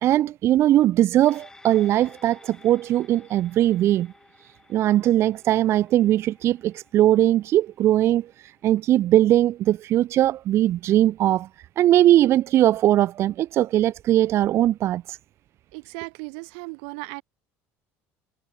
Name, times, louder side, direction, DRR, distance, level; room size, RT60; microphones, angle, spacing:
voice 1, 0.0-4.1 4.7-11.5 11.8-15.2, right 13 dB, 50° right, 0.6 m, -20 dB
sound 1, 1.2-9.9 10.3-10.4, left 2 dB, 10° left, 6.3 m, -54 dB
voice 2, 15.7-17.2, right 38 dB, 90° right, 3.8 m, -36 dB
cardioid pair, 125°, 6 cm